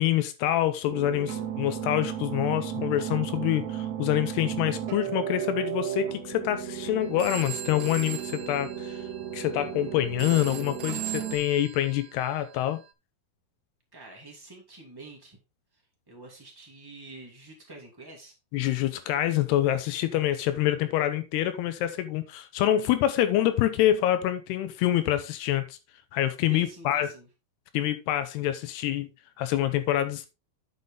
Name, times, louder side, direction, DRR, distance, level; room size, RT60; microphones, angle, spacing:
voice 1, 0.0-9.0 9.3-12.8 18.5-25.8 26.1-27.1 27.7-29.1 29.4-30.3, left 13 dB, 80° left, 2.7 m, -26 dB
sound 1, 0.9-11.4, right 10 dB, 55° right, 2.3 m, -34 dB
Telephone, 7.0-12.9, right 12 dB, 75° right, 2.6 m, -41 dB
voice 2, 13.9-15.4 16.1-18.3 26.5-27.3, right 2 dB, 20° right, 0.6 m, -47 dB
9.5 x 5.9 x 3.6 m
omnidirectional pair, 4.8 m